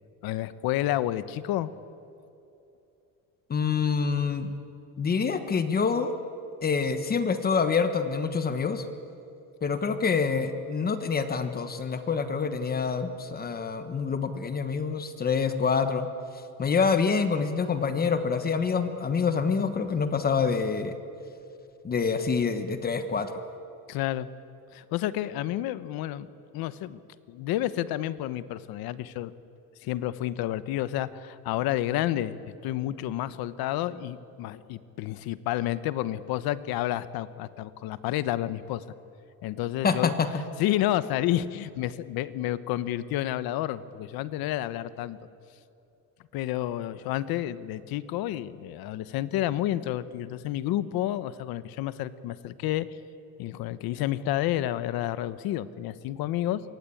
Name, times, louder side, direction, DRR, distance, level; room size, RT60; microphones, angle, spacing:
voice 1, 0.2-1.7 23.9-24.3 24.7-27.0 27.3-29.3 29.8-38.8 39.4-40.1 40.6-45.2 46.3-52.9 53.4-56.6, left 13 dB, 85° left, 14 dB, 1.1 m, -30 dB
voice 2, 3.5-4.5 5.0-6.1 6.6-8.8 9.6-16.1 16.6-20.9 21.8-23.3 39.8-40.3, left 5 dB, 25° left, 9 dB, 1.3 m, -26 dB
26.5 x 23.0 x 8.6 m, 2.7 s
cardioid pair, 165°, 35 cm